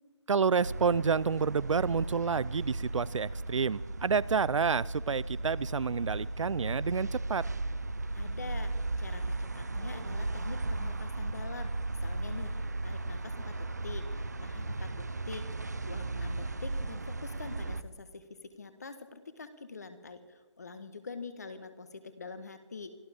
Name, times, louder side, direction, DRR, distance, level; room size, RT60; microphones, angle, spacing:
voice 1, 0.3-7.5, right 5 dB, 85° right, 22 dB, 0.5 m, -29 dB
sound 1, 0.6-17.8, right 2 dB, 35° right, 0.5 m, -36 dB
voice 2, 8.1-22.9, left 4 dB, 35° left, 11 dB, 1.2 m, -45 dB
25.0 x 13.5 x 3.5 m, 1.3 s
hypercardioid pair, 180°, 16 cm